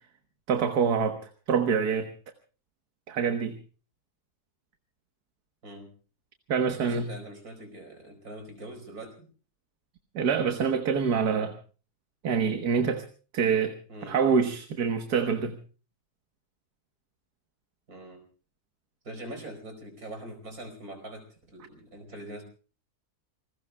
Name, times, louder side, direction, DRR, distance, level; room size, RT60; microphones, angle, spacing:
voice 1, 0.5-1.2 1.5-2.1 3.1-3.6 6.5-7.1 10.2-11.6 12.2-13.0 13.3-13.7 14.1-15.6, right 6 dB, 85° right, 1.9 m, -25 dB
voice 2, 6.8-9.3 13.9-14.2 17.9-18.2 19.1-22.4, right 1 dB, 65° right, 5.3 m, -43 dB
27.5 x 20.5 x 2.3 m
omnidirectional pair, 1.7 m